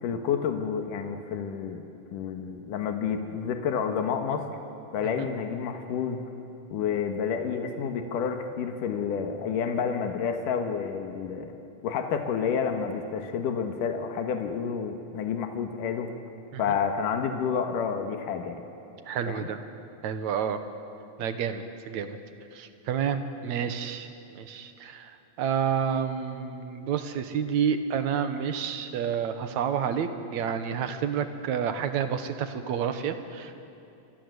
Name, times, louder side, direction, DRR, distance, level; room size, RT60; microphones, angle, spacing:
voice 1, 0.0-1.8 2.1-4.5 4.9-6.2 6.7-11.5 11.8-16.1 16.6-18.6 19.3-19.5 23.6-23.7, left 7 dB, 80° left, 5 dB, 3.1 m, -29 dB
voice 2, 19.1-19.6 20.0-20.6 21.2-22.2 22.5-25.1 25.4-33.5, right 7 dB, 65° right, 9 dB, 2.5 m, -29 dB
28.0 x 24.0 x 8.1 m, 2.7 s
omnidirectional pair, 3.7 m